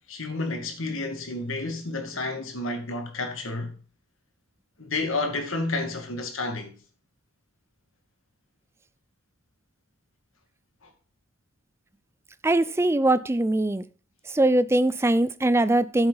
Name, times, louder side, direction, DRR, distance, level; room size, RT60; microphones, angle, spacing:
voice 1, 0.1-3.7 4.8-6.7 10.8-10.9, left 2 dB, 70° left, 1.9 m, -30 dB
voice 2, 12.4-13.8 14.3-16.1, right 1 dB, 10° right, 0.4 m, -22 dB
10.5 x 7.9 x 4.0 m
head